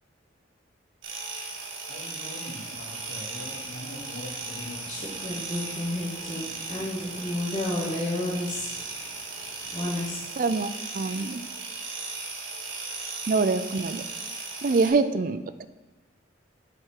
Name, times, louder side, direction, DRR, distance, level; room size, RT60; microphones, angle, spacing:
sound 1, 1.0-14.9, right 3 dB, 85° right, 1.6 m, -37 dB
voice 1, 1.9-4.8, left 1 dB, 65° left, -5 dB, 2.4 m, -41 dB
voice 2, 4.9-10.2, left 1 dB, 30° left, -12 dB, 1.9 m, -32 dB
voice 3, 10.4-11.4 13.3-14.0 14.6-15.6, right 4 dB, 45° right, 11 dB, 0.4 m, -25 dB
7.6 x 4.9 x 4.5 m, 1.1 s
head